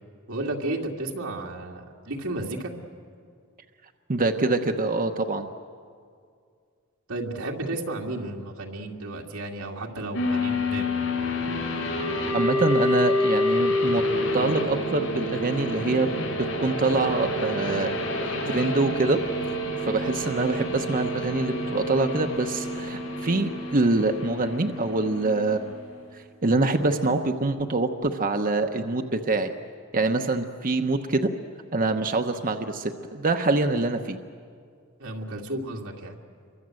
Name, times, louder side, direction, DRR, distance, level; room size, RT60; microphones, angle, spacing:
voice 1, 0.3-2.7 7.1-10.9 35.0-36.2, right 2 dB, 85° right, 0 dB, 2.4 m, -33 dB
voice 2, 4.1-5.5 11.8-12.1 12.3-14.0 14.3-16.1 16.6-17.9 18.5-19.2 19.8-25.7 26.1-29.5 29.9-31.3 31.7-34.2, right 2 dB, 40° right, 5 dB, 1.0 m, -25 dB
sound 1, 10.1-25.9, left 1 dB, 75° left, 7.9 m, -28 dB
28.0 x 24.0 x 7.7 m, 2.2 s
head